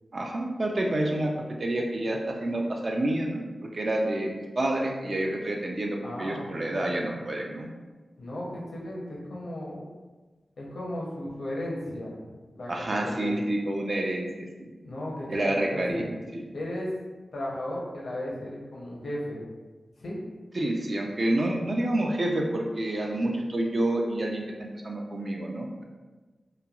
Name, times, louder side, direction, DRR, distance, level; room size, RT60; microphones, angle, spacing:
voice 1, 0.1-1.3 1.6-3.4 3.7-7.7 12.7-14.3 14.6-14.7 15.3-16.1 16.3-16.5 20.5-25.8, right 1 dB, 45° right, 0 dB, 0.3 m, -28 dB
voice 2, 6.0-7.0 8.2-9.9 10.6-12.3 12.5-13.4 14.8-16.1 16.5-16.9 17.3-19.4 20.0-20.2, left 1 dB, 80° left, -4 dB, 0.7 m, -35 dB
3.0 x 2.2 x 2.3 m, 1.3 s
wide cardioid pair, 90°, 0 cm